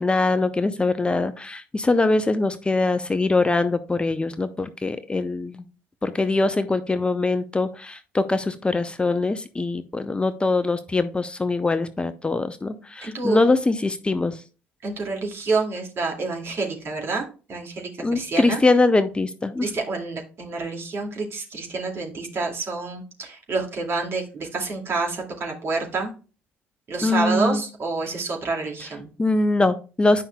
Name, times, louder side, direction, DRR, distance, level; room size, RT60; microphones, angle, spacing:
voice 1, 0.0-5.6 6.0-14.4 18.0-19.6 27.0-27.6 29.2-30.3, left 3 dB, 20° left, 11 dB, 0.6 m, -22 dB
voice 2, 13.0-13.4 14.8-18.6 19.6-26.1 26.9-29.1, right 3 dB, 45° right, 1 dB, 2.3 m, -28 dB
10.0 x 5.5 x 2.3 m, 0.35 s
hypercardioid pair, 55°, 6 cm